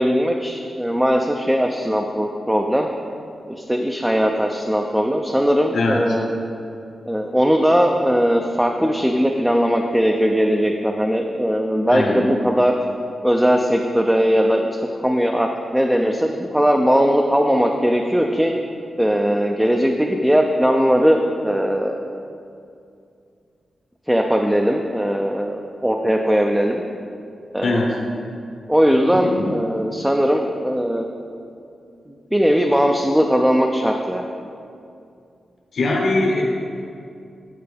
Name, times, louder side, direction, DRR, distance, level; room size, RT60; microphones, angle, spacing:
voice 1, 0.0-2.9 3.7-6.4 7.1-12.8 13.2-14.7 15.0-18.5 19.0-22.0 24.1-26.8 27.5-27.8 28.7-31.0 32.3-34.3, equal, 5° right, 2 dB, 0.3 m, -19 dB
voice 2, 5.7-6.0 11.9-12.2 27.6-28.0 29.1-29.6 35.7-36.4, left 2 dB, 70° left, -1 dB, 1.0 m, -21 dB
9.0 x 4.3 x 3.4 m, 2.4 s
wide cardioid pair, 115°, 0 cm